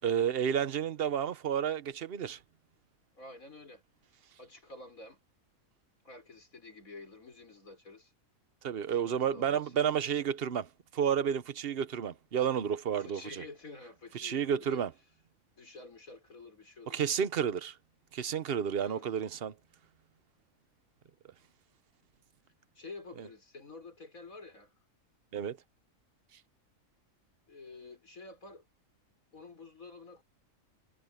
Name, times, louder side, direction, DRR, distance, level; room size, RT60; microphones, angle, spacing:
voice 1, 0.0-2.4 8.6-13.4 14.1-14.9 16.9-17.8 18.1-19.5 23.2-23.3 25.3-25.6, right 8 dB, 50° right, 1.0 m, -31 dB
voice 2, 3.2-3.8 4.4-5.2 6.0-8.1 8.9-9.7 13.0-14.8 15.6-17.0 18.8-19.1 22.8-24.7 27.5-28.6 29.3-30.2, left 3 dB, 80° left, 5.8 m, -49 dB
omnidirectional pair, 1.4 m